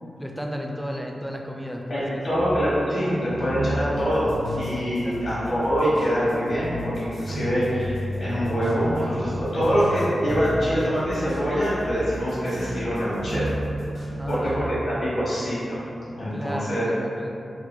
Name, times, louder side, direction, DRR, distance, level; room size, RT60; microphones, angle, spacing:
voice 1, 0.2-2.4 3.0-3.1 5.0-5.3 14.2-14.8 16.3-17.4, equal, ahead, 1 dB, 0.3 m, -33 dB
voice 2, 1.9-13.5 14.3-15.8 16.1-16.9, equal, 75° left, -11 dB, 1.1 m, -24 dB
sound 1, 2.3-14.5, equal, 60° right, 0.5 m, -33 dB
sound 2, 4.0-14.6, left 1 dB, 90° right, 1.1 m, -42 dB
3.1 x 2.3 x 3.6 m, 2.7 s
wide cardioid pair, 120°, 0 cm